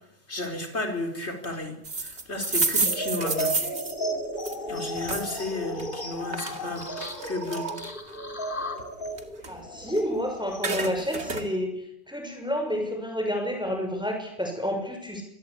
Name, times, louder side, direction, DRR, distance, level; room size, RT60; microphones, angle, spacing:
voice 1, 0.3-3.6 4.7-6.9 7.2-7.7, left 2 dB, 70° left, 4 dB, 4.9 m, -33 dB
sound 1, 1.8-5.4 5.8-8.2 8.6-10.1 10.4-11.5, right 3 dB, 70° right, 2.7 m, -30 dB
sound 2, 2.8-10.9, equal, 45° left, 3.7 m, -34 dB
voice 2, 9.5-11.7 12.1-15.2, equal, 5° right, 3 dB, 6.5 m, -29 dB
26.0 x 22.0 x 8.8 m, 0.76 s
omnidirectional pair, 1.2 m